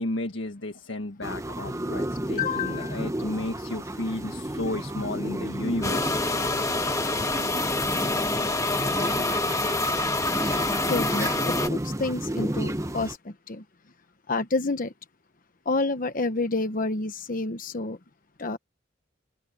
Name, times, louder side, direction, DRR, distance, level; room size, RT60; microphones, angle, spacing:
voice 1, 0.0-6.1, left 1 dB, 80° left, 1.6 m, -33 dB
sound 1, 1.2-13.2, right 1 dB, 15° right, 1.1 m, -32 dB
voice 2, 2.4-3.0 10.9-11.3 11.7-13.6 14.3-14.9 15.7-18.0 18.4-18.6, left 3 dB, 45° left, 1.1 m, -28 dB
sound 2, 5.8-11.7, left 2 dB, 15° left, 1.4 m, -26 dB
open air
head